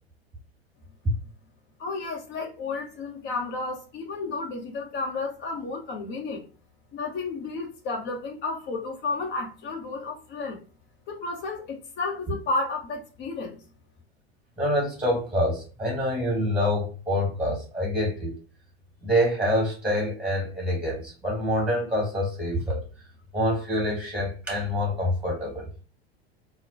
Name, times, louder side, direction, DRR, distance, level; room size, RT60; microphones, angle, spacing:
voice 1, 1.8-6.5 6.9-10.6 11.1-13.6, left 3 dB, 35° left, 1.1 m, -32 dB
voice 2, 14.6-18.3 19.0-22.9 23.3-25.7, equal, 5° right, 1.6 m, -26 dB
4.0 x 2.2 x 2.7 m
figure-of-eight pair, 85°, 32 cm